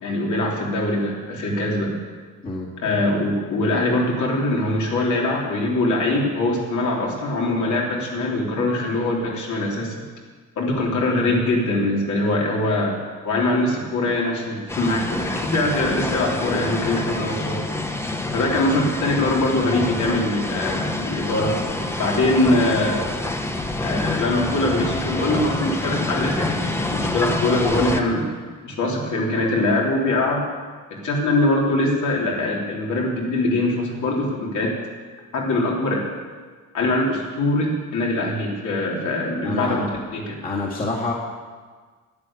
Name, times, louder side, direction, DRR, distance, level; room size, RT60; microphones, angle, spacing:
voice 1, 0.0-1.9 2.8-9.9 10.6-13.0 13.2-17.6 18.3-21.6 22.0-23.0 23.8-28.3 28.6-30.4 30.9-34.7 35.3-36.0 36.7-40.4, left 2 dB, 65° left, -2 dB, 3.6 m, -22 dB
sound 1, 14.7-28.0, left 2 dB, 10° left, 0.9 m, -27 dB
voice 2, 39.4-39.9 40.4-41.1, left 2 dB, 25° left, -4 dB, 2.3 m, -26 dB
11.0 x 11.0 x 9.0 m, 1.5 s
cardioid pair, 170°, 32 cm